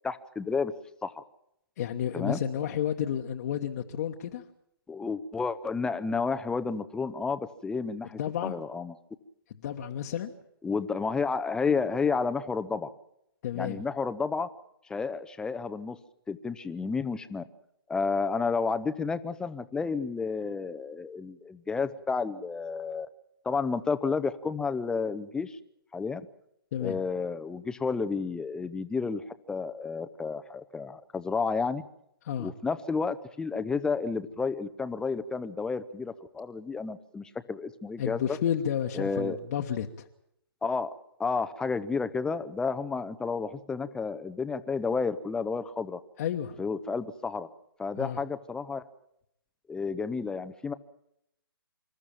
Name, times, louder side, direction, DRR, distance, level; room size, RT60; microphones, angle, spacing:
voice 1, 0.0-0.7 1.0-1.2 2.1-2.4 4.9-8.9 10.6-12.9 13.5-14.5 14.9-16.0 16.3-17.4 17.9-23.1 23.4-25.6 25.9-26.2 26.8-31.8 32.4-38.2 38.9-39.4 40.6-40.9 41.2-46.0 46.6-47.5 47.8-48.8 49.7-50.7, left 4 dB, 5° left, 12 dB, 0.7 m, -31 dB
voice 2, 1.8-4.4 8.2-8.6 9.6-10.3 13.4-13.8 26.7-27.0 32.2-32.5 38.0-40.1 46.2-46.6 48.0-48.2, left 9 dB, 45° left, 2 dB, 1.3 m, -31 dB
26.0 x 13.5 x 8.8 m, 0.78 s
figure-of-eight pair, 135°, 12 cm